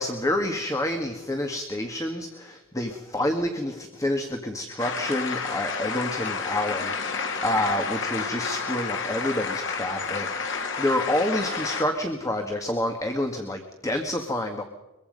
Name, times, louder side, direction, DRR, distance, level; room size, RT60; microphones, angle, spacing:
voice 1, 0.0-14.6, left 1 dB, 15° left, 4 dB, 1.8 m, -28 dB
sound 1, 4.8-11.8, left 5 dB, 65° left, 2.7 m, -30 dB
23.5 x 23.0 x 5.4 m, 1.1 s
head